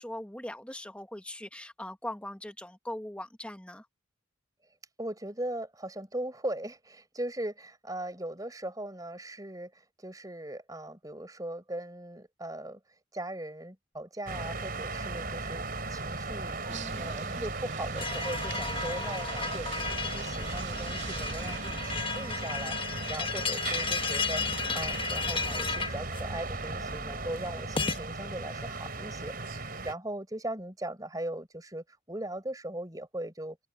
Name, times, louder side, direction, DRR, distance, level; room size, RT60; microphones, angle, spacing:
voice 1, 0.0-3.9 16.7-17.4, left 1 dB, 5° left, 1.1 m, -41 dB
voice 2, 5.0-12.8 13.1-16.6 17.0-33.6, right 1 dB, 20° right, 5.0 m, -39 dB
sound 1, 14.3-29.9, right 3 dB, 45° right, 4.5 m, -36 dB
sound 2, 16.7-21.7, right 6 dB, 70° right, 2.2 m, -45 dB
sound 3, 18.0-28.0, left 4 dB, 25° left, 0.9 m, -34 dB
head